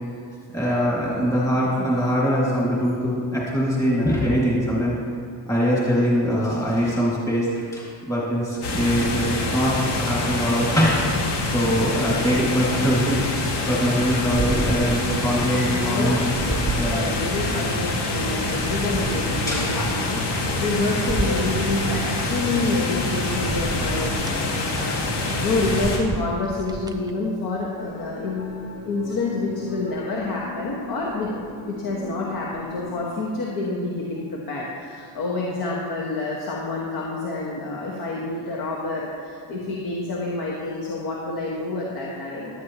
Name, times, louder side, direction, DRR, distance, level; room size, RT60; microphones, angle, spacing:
voice 1, 0.5-4.9 5.5-9.2 9.5-11.0 11.5-16.2 16.8-17.0 19.5-19.6, equal, 10° left, -6 dB, 2.4 m, -22 dB
sound 1, 8.6-26.0, left 2 dB, 75° left, 2.3 m, -26 dB
sound 2, 14.3-15.5 15.9-17.6 18.1-20.7 21.0-22.2 22.8-22.9 23.3-24.4 24.9-25.1 25.4-27.1 27.6-27.7, right 3 dB, 10° right, 0.3 m, -32 dB
voice 2, 15.5-28.5 28.8-31.3 31.7-42.6, left 2 dB, 60° left, -4 dB, 1.8 m, -28 dB
sound 3, 27.7-32.9, left 3 dB, 40° left, 3.6 m, -39 dB
16.0 x 12.0 x 3.1 m, 2.2 s
cardioid pair, 150°, 42 cm